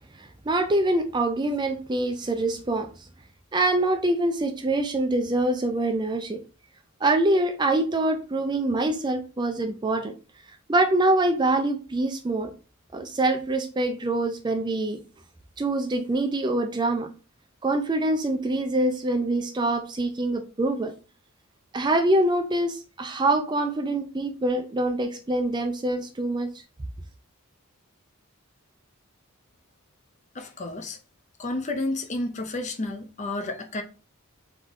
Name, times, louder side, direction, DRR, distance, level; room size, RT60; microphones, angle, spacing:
voice 1, 0.2-2.9 3.5-6.4 7.0-10.1 10.7-12.5 12.9-15.0 15.6-17.1 17.6-20.9 21.7-26.5, right 2 dB, 20° right, 0.4 m, -25 dB
voice 2, 30.3-31.0 31.4-33.8, left 2 dB, 35° left, 0.6 m, -31 dB
3.6 x 3.6 x 3.6 m
head